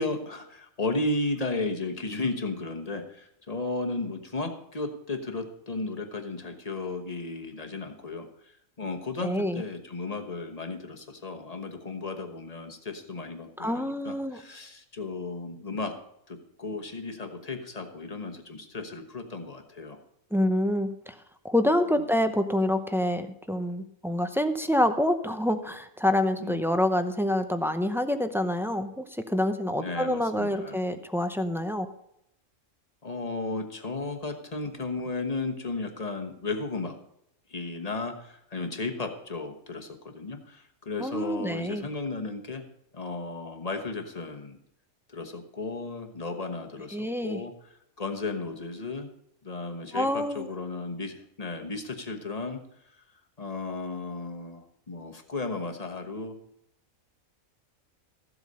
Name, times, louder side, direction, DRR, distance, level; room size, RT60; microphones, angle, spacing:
voice 1, 0.0-8.5 8.8-16.0 16.3-20.0 26.4-26.6 29.8-30.8 33.0-37.0 37.5-42.7 42.9-44.6 45.1-47.5 48.0-49.1 49.4-52.6 53.4-56.4, left 3 dB, 30° left, 4 dB, 1.3 m, -34 dB
voice 2, 9.2-9.6 13.6-14.4 20.3-21.2 21.4-31.9 41.0-41.9 46.9-47.4 49.9-50.5, left 1 dB, 5° right, 8 dB, 0.4 m, -27 dB
14.5 x 8.0 x 5.5 m, 0.77 s
omnidirectional pair, 1.4 m